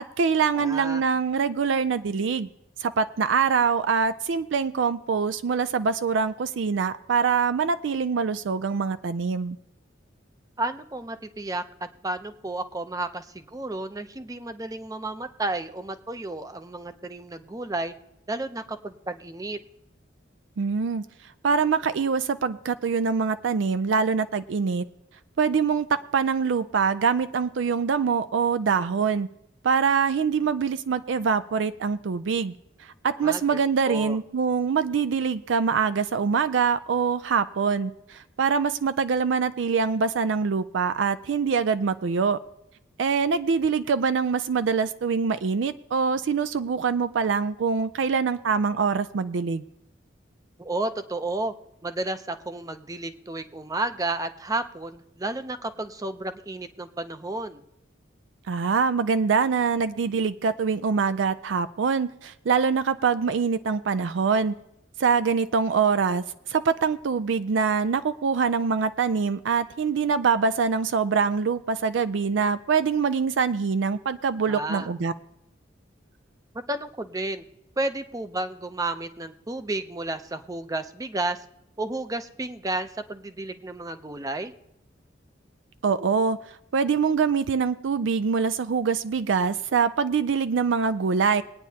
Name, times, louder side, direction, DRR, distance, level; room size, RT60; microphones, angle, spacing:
voice 1, 0.0-2.5 2.8-9.6 20.6-21.0 21.4-24.9 25.4-29.3 29.6-32.5 32.8-42.4 43.0-49.6 58.5-64.5 65.0-66.2 66.5-75.1 85.8-86.4 86.7-91.4, right 5 dB, 75° right, 13 dB, 0.4 m, -24 dB
voice 2, 0.6-1.0 10.6-17.9 18.3-19.6 33.2-33.6 33.8-34.2 50.6-51.5 51.8-57.6 74.5-74.9 76.7-77.4 77.8-81.4 81.8-84.5, right 2 dB, 20° right, 9 dB, 0.6 m, -32 dB
22.0 x 9.3 x 2.8 m, 0.83 s
head